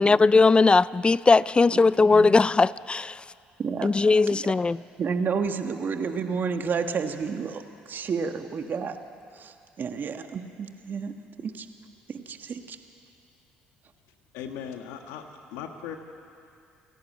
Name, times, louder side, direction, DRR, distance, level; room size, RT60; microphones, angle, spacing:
voice 1, 0.0-3.2 3.8-4.8, left 3 dB, 25° left, 0.4 m, -19 dB
voice 2, 5.0-9.0 9.3-11.1 11.4-11.7 12.1-12.8, right 5 dB, 50° right, 1.6 m, -30 dB
voice 3, 14.3-16.0, left 8 dB, 85° left, 1.6 m, -38 dB
29.0 x 11.0 x 8.7 m
supercardioid pair, 60°, 4 cm